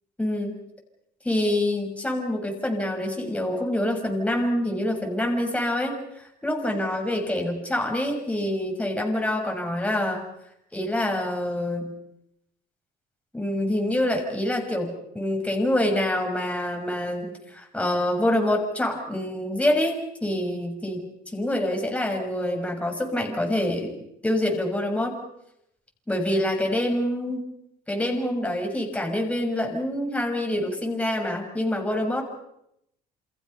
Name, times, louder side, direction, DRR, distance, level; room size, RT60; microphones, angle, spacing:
voice 1, 0.2-0.6 1.2-10.2 10.7-11.9 13.3-21.1 21.3-23.9 24.2-25.2 26.1-27.5 27.9-32.2, left 1 dB, 5° left, 2 dB, 6.3 m, -26 dB
28.5 x 28.0 x 5.7 m, 0.78 s
cardioid pair, 110°, 17 cm